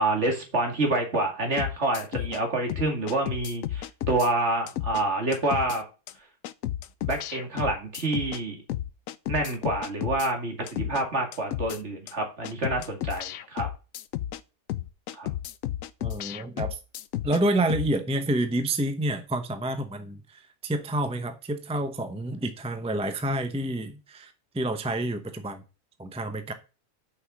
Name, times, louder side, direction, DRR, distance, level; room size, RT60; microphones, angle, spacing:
voice 1, 0.0-5.8 7.0-8.6 9.3-13.7 15.2-15.3, right 2 dB, 60° right, 2.5 m, -27 dB
sound 1, 1.6-2.4 2.7-4.3 4.7-5.0 5.3-5.8 6.1-6.2 6.4-8.4 8.7-10.3 10.7-11.0 11.3-11.8 12.1-12.2 12.4-14.4 14.7-17.4 17.7-17.9, left 12 dB, 90° left, 1.0 m, -32 dB
voice 2, 16.0-16.8 17.2-25.6 26.0-26.5, right 1 dB, 5° right, 0.6 m, -29 dB
6.6 x 5.7 x 6.2 m
omnidirectional pair, 1.3 m